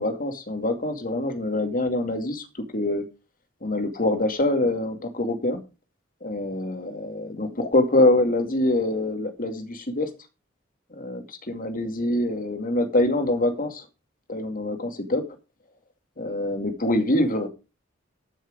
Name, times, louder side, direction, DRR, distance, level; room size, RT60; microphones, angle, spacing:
voice 1, 0.0-2.5 2.7-3.0 3.6-5.6 6.2-10.1 10.9-13.8 14.3-15.2 16.2-17.5, left 1 dB, 45° left, 7 dB, 2.2 m, -25 dB
13.5 x 6.4 x 5.0 m, 0.30 s
head